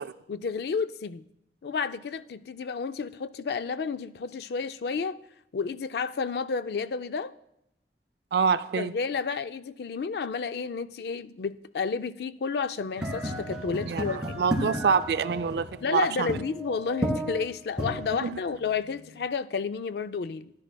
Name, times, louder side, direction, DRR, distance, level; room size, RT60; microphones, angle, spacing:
voice 1, 0.3-1.2 1.6-5.2 5.5-7.3 8.8-14.3 15.8-20.5, left 5 dB, 60° left, 0.4 m, -31 dB
voice 2, 8.3-8.9 13.9-16.4 18.2-18.4, right 6 dB, 65° right, 0.3 m, -26 dB
sound 1, 13.0-19.3, equal, 5° right, 1.7 m, -34 dB
13.5 x 10.5 x 2.2 m
head